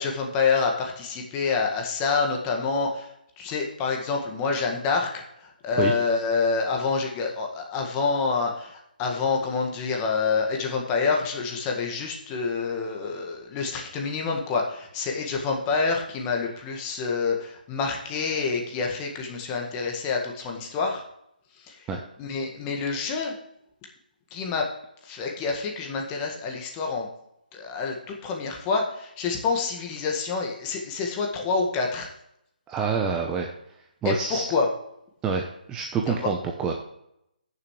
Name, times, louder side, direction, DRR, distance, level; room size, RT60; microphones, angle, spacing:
voice 1, 0.0-3.1 3.4-21.0 21.6-21.8 22.2-23.3 24.3-24.7 25.0-27.1 27.5-32.1 34.0-34.7 36.1-36.3, left 4 dB, 20° left, 1 dB, 1.8 m, -27 dB
voice 2, 32.7-33.5 34.0-34.5 35.2-36.7, right 6 dB, 15° right, 2 dB, 0.8 m, -27 dB
16.0 x 7.0 x 3.2 m, 0.77 s
figure-of-eight pair, 150°, 5 cm